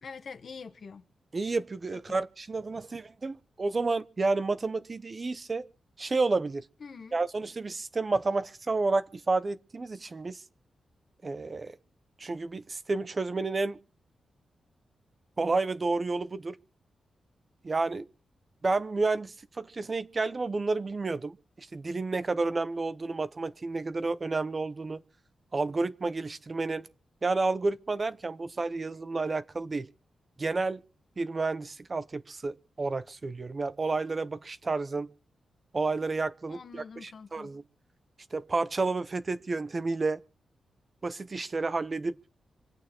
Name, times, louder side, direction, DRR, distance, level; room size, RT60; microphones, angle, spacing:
voice 1, 0.0-1.0 2.1-2.2 6.8-7.2 36.5-37.5, left 5 dB, 50° left, 1.3 m, -45 dB
voice 2, 1.3-5.6 6.0-6.7 7.1-10.4 11.2-11.7 12.2-13.8 15.4-16.6 17.6-18.1 18.6-25.0 25.5-26.9 27.2-29.9 30.4-30.8 31.2-35.1 35.7-37.6 38.3-40.2 41.0-42.2, right 3 dB, 30° right, 0.7 m, -30 dB
26.5 x 9.1 x 4.4 m
wide cardioid pair, 150°, 0 cm